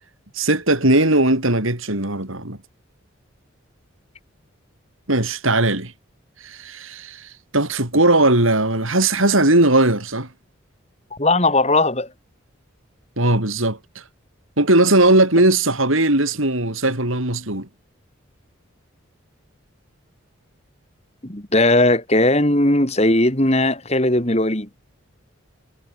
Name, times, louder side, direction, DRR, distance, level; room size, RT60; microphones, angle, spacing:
voice 1, 0.4-2.6 5.1-5.9 6.4-7.2 7.5-10.3 13.2-13.8 14.6-17.7, right 2 dB, 75° right, 5.9 m, -18 dB
voice 2, 11.2-12.1 21.2-24.7, left 2 dB, 30° left, 3.1 m, -18 dB
head